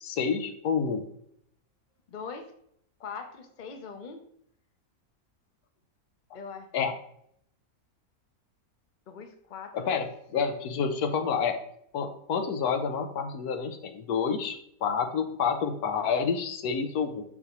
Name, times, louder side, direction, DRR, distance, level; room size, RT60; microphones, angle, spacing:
voice 1, 0.0-1.0 6.7-6.9 9.7-11.6 11.9-17.2, left 6 dB, 85° left, 7 dB, 1.2 m, -29 dB
voice 2, 2.1-2.5 3.0-4.2 6.3-6.7 9.1-9.9, left 5 dB, 40° left, 5 dB, 0.7 m, -41 dB
6.4 x 5.7 x 3.0 m, 0.70 s
omnidirectional pair, 1.6 m